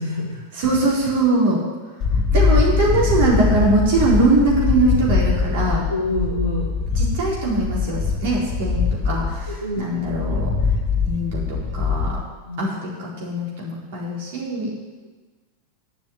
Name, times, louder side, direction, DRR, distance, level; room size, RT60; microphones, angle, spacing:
voice 1, 0.0-0.4 5.9-6.7 9.5-9.9 12.4-12.7, left 2 dB, 90° right, -4 dB, 1.5 m, -26 dB
voice 2, 0.5-1.6 2.3-5.8 7.0-10.5 11.1-12.2 12.6-14.7, right 2 dB, 50° right, -4 dB, 4.3 m, -21 dB
sound 1, 2.0-12.2, left 5 dB, 35° left, 1.8 m, -22 dB
10.5 x 7.2 x 9.0 m, 1.3 s
figure-of-eight pair, 90°, 0 cm